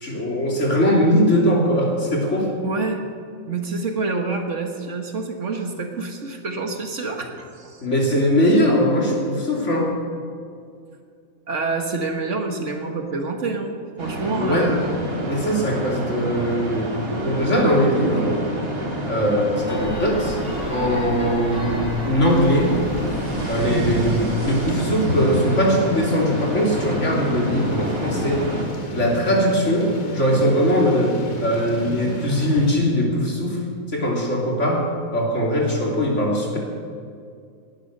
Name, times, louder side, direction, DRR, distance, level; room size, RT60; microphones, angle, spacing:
voice 1, 0.0-2.6 7.8-9.9 14.4-14.7 15.2-18.4 19.0-20.4 20.7-22.8 23.5-28.4 28.9-33.6 33.9-36.6, equal, 60° left, -2 dB, 3.3 m, -21 dB
voice 2, 2.6-3.0 3.5-7.8 11.5-14.9, right 3 dB, 60° right, 4 dB, 1.8 m, -27 dB
sound 1, 14.0-28.6, right 1 dB, 85° right, 3.3 m, -29 dB
sound 2, 19.7-25.0, left 1 dB, 30° left, 2.1 m, -35 dB
Thunder / Rain, 22.3-32.7, equal, 85° left, 2.5 m, -30 dB
18.0 x 11.5 x 6.6 m, 2.3 s
omnidirectional pair, 1.4 m